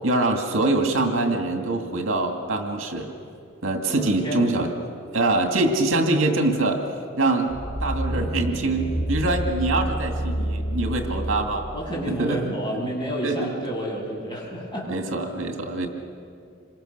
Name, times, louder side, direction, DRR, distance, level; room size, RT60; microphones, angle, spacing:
voice 1, 0.0-3.1 3.6-4.7 5.1-6.8 7.2-11.7 12.1-12.5 13.2-13.5 14.9-15.9, right 2 dB, 70° right, 4 dB, 2.3 m, -24 dB
voice 2, 4.0-4.6 11.7-14.9, equal, 20° left, -4 dB, 7.6 m, -30 dB
sound 1, 7.5-11.9 12.4-12.5, right 1 dB, 50° left, 3.6 m, -28 dB
27.5 x 25.5 x 6.8 m, 2.3 s
head